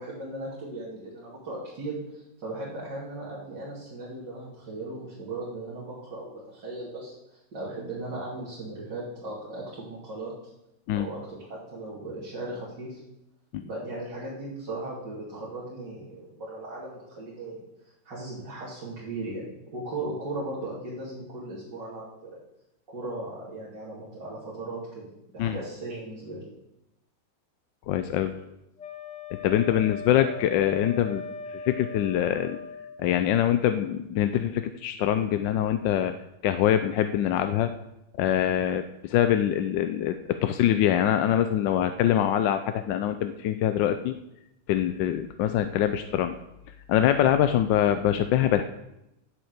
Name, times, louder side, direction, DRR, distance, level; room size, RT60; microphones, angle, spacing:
voice 1, 0.0-10.3 10.9-13.0 13.6-17.6 18.1-22.4 22.9-25.1 25.3-26.4 28.3-28.4, right 2 dB, 70° right, -8 dB, 3.5 m, -37 dB
voice 2, 27.9-28.3 29.4-31.2 31.5-32.6 33.0-36.1 36.4-37.7 38.2-44.1 44.7-46.4 46.9-48.6, left 11 dB, 85° left, 9 dB, 1.3 m, -24 dB
Wind instrument woodwind instrument, 28.8-33.0, left 4 dB, 55° left, 0.4 m, -39 dB
9.5 x 7.4 x 8.0 m, 0.88 s
omnidirectional pair, 1.9 m